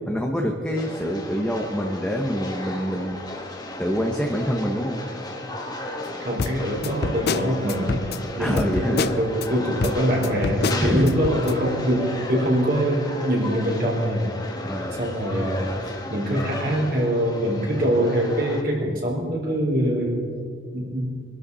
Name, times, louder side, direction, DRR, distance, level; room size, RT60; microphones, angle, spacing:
voice 1, 0.1-3.5 3.8-5.0 8.4-9.1 10.8-11.1 14.6-15.0, equal, 5° left, 0 dB, 1.1 m, -26 dB
sound 1, 0.8-18.6, left 1 dB, 20° left, 1.9 m, -35 dB
voice 2, 6.2-8.0 8.4-14.3 14.9-20.3 20.7-21.1, equal, 50° right, -2 dB, 4.0 m, -24 dB
sound 2, 6.4-9.5 9.8-11.5, left 4 dB, 55° left, 0.5 m, -27 dB
24.5 x 12.5 x 4.2 m, 2.1 s
head